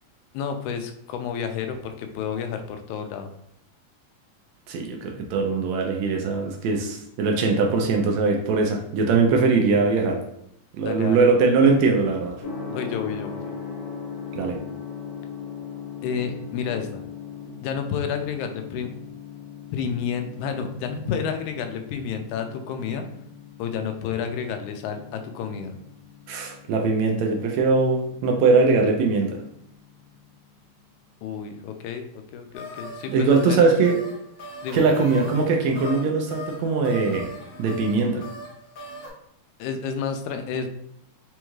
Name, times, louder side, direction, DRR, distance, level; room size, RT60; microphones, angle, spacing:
voice 1, 0.3-3.3 10.8-11.3 12.7-13.5 16.0-17.0 17.6-18.9 19.7-23.1 23.6-25.7 31.2-33.7 34.6-34.8 39.6-40.7, left 7 dB, 90° left, 6 dB, 2.0 m, -30 dB
voice 2, 4.7-10.2 10.8-12.3 14.3-14.6 26.3-29.4 33.1-34.0 34.7-37.3 37.6-38.2, right 4 dB, 80° right, 2 dB, 1.7 m, -21 dB
Gong, 12.4-30.3, left 6 dB, 70° left, 1.7 m, -40 dB
sound 1, 32.5-39.1, left 1 dB, 50° left, 1.0 m, -39 dB
5.2 x 2.3 x 3.0 m, 0.76 s
omnidirectional pair, 3.3 m